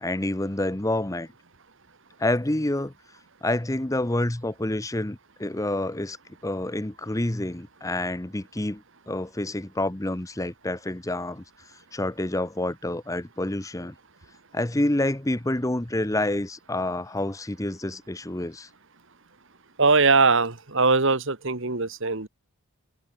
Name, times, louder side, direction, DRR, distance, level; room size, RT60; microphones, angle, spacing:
voice 1, 0.0-1.3 2.2-2.9 3.4-6.2 6.4-11.4 11.9-13.9 14.5-18.7, left 1 dB, 15° left, 0.9 m, -28 dB
voice 2, 19.8-22.3, right 4 dB, 55° right, 1.8 m, -21 dB
head